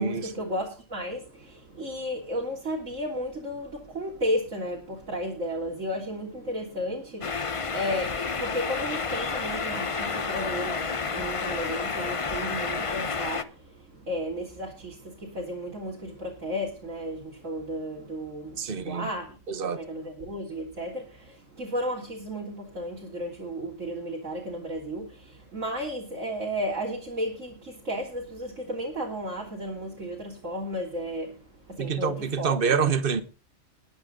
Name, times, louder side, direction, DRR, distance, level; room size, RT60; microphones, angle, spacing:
voice 1, 0.0-32.8, equal, 85° right, 3.7 m, -34 dB
sound 1, 7.2-13.4, left 5 dB, 30° left, 0.8 m, -30 dB
voice 2, 18.6-19.1 19.5-19.8 31.8-33.2, right 6 dB, 45° right, 1.4 m, -26 dB
20.0 x 9.0 x 3.8 m
omnidirectional pair, 1.3 m